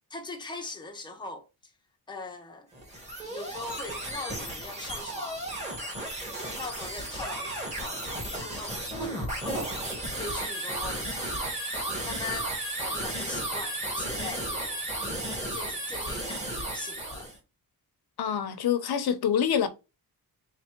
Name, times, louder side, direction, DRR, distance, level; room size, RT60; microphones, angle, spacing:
voice 1, 0.1-1.5 2.1-2.7 3.2-5.5 6.4-11.3 11.9-12.5 12.8-15.1 15.5-17.3, left 3 dB, 10° left, 0.7 m, -41 dB
sound 1, 2.7-17.4, right 1 dB, 15° right, 1.7 m, -34 dB
voice 2, 18.2-19.7, left 8 dB, 70° left, 0.8 m, -26 dB
3.5 x 3.4 x 4.4 m
wide cardioid pair, 170°, 39 cm